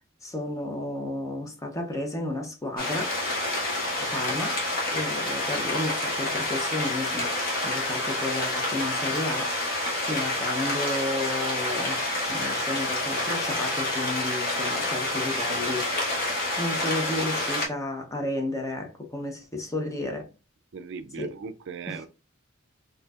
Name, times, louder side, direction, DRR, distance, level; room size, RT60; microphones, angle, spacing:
voice 1, 0.2-3.2 4.0-4.6 4.9-7.3 7.6-20.3 21.2-21.3 21.9-22.0, left 2 dB, 15° left, 0.6 m, -32 dB
sound 1, 2.8-17.7, left 1 dB, 45° left, 1.2 m, -28 dB
voice 2, 20.7-22.1, right 6 dB, 60° right, 0.4 m, -38 dB
4.3 x 2.7 x 2.3 m
head